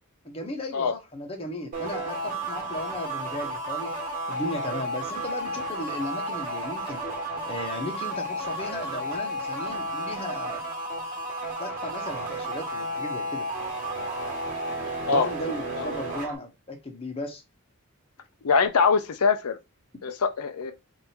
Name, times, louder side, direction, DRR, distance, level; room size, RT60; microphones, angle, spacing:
voice 1, 0.2-7.0 7.5-10.6 11.6-13.4 15.0-17.4, left 1 dB, 25° left, 1.0 m, -36 dB
sound 1, 1.7-16.4, right 1 dB, 35° right, 1.7 m, -32 dB
voice 2, 18.4-19.6 20.0-20.7, left 5 dB, 85° left, 0.5 m, -23 dB
3.5 x 2.7 x 4.2 m
head